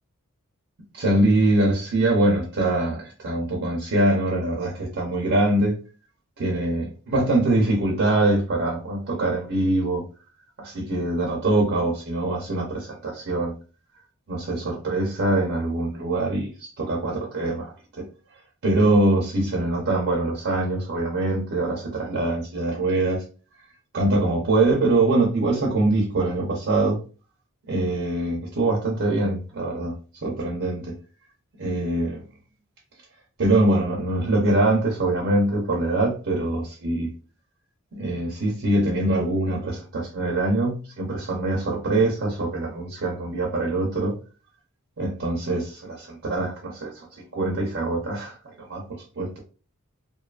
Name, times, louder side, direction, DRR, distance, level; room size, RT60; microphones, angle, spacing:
voice 1, 0.9-5.8 6.4-10.0 10.6-13.5 14.3-17.7 18.6-23.2 23.9-27.0 27.7-30.0 30.2-31.0 31.6-32.2 33.4-37.1 37.9-44.1 45.0-48.8 49.2-49.3, right 2 dB, 55° right, 0.6 m, -23 dB
2.6 x 2.3 x 2.3 m
head